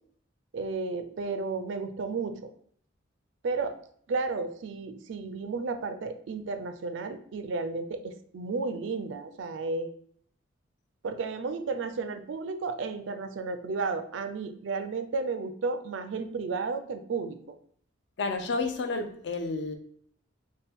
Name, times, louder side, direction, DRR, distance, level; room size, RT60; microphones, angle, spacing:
voice 1, 0.5-2.5 3.4-3.8 4.1-9.9 11.0-17.4, right 4 dB, 70° right, 0.4 m, -33 dB
voice 2, 18.2-19.8, left 3 dB, 60° left, 0.5 m, -30 dB
4.1 x 2.2 x 3.4 m
head